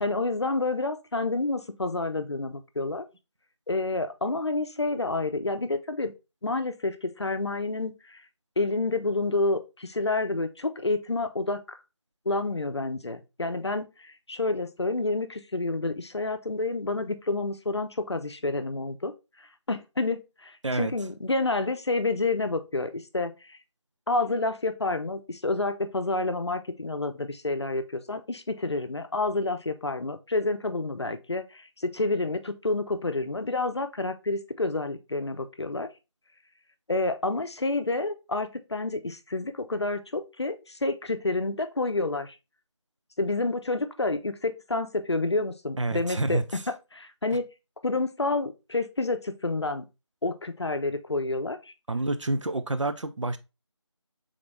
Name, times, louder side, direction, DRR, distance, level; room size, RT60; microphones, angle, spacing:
voice 1, 0.0-3.1 3.7-6.1 6.4-8.2 8.6-11.8 12.3-19.1 19.4-23.6 24.1-35.9 36.9-42.4 43.2-47.4 47.8-49.9 50.2-51.6, left 2 dB, 65° left, 0.6 m, -29 dB
voice 2, 45.8-46.4 51.9-53.4, right 2 dB, 80° right, 0.6 m, -28 dB
3.9 x 3.6 x 3.2 m
figure-of-eight pair, 175°, 16 cm